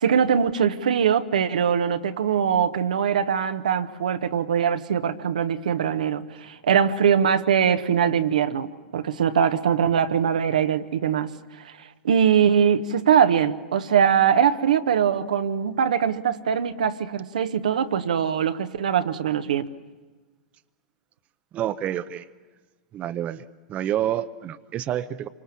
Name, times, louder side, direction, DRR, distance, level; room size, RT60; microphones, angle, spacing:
voice 1, 0.0-11.3 11.6-11.7 12.0-19.7, right 8 dB, 70° right, 9 dB, 1.1 m, -22 dB
voice 2, 21.5-22.2 22.9-23.4 23.7-25.3, right 11 dB, 35° right, 10 dB, 0.8 m, -28 dB
27.5 x 25.0 x 7.5 m, 1.3 s
figure-of-eight pair, 95°, 4 cm